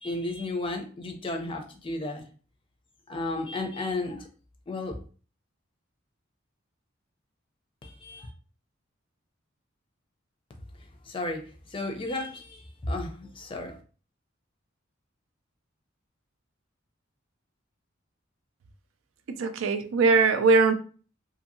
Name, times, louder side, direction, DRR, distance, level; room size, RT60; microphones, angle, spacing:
voice 1, 0.0-2.2 3.1-4.3 4.7-5.0 7.8-8.3 11.1-13.8, left 2 dB, 25° left, 4 dB, 0.5 m, -33 dB
voice 2, 19.3-20.7, right 4 dB, 80° right, 10 dB, 0.4 m, -21 dB
2.7 x 2.6 x 2.6 m, 0.39 s
head